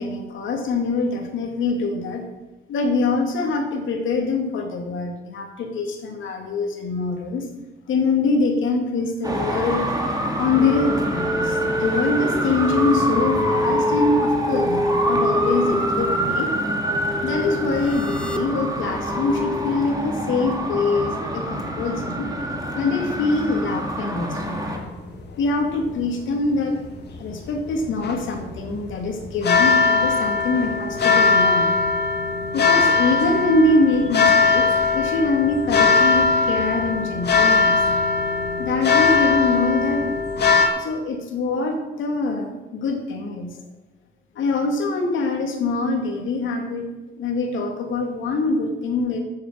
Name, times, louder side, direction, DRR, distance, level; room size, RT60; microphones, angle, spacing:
voice 1, 0.0-2.2 2.7-7.5 7.9-9.9 10.4-16.5 17.2-22.3 22.7-24.8 25.4-26.7 27.2-31.8 32.5-34.7 34.9-37.8 38.6-40.2 40.8-43.6 44.4-46.9 47.2-49.2, left 3 dB, 75° left, 3 dB, 2.5 m, -24 dB
Traffic noise roadway noise, 9.2-24.8, right 1 dB, 20° right, 2.6 m, -26 dB
sound 1, 10.5-19.7, left 1 dB, 5° left, 1.1 m, -27 dB
sound 2, 24.4-40.7, left 4 dB, 55° left, 2.1 m, -20 dB
10.0 x 8.8 x 7.6 m, 1.1 s
cardioid pair, 90°, 20 cm